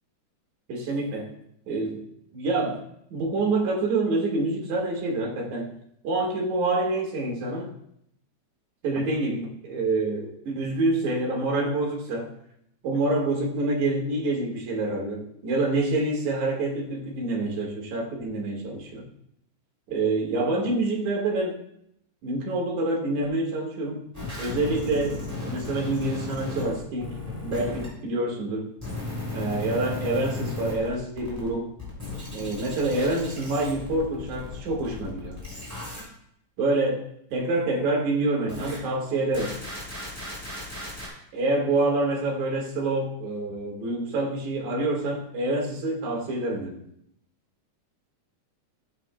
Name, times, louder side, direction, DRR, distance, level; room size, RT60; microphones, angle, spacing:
voice 1, 0.7-1.3 1.7-2.0 2.3-2.8 3.1-5.7 6.0-7.7 8.8-12.3 12.8-19.1 19.9-21.6 22.2-24.1 24.4-27.1 27.4-28.7 29.3-31.7 32.3-35.4 36.6-37.0 37.3-39.6 41.3-46.8, right 2 dB, 75° right, -2 dB, 3.2 m, -27 dB
sound 1, 24.1-27.9 28.8-31.5 31.8-36.0 38.5-38.8 39.3-41.1, left 2 dB, 5° right, 3.8 m, -35 dB
15.0 x 9.0 x 2.3 m, 0.73 s
omnidirectional pair, 3.3 m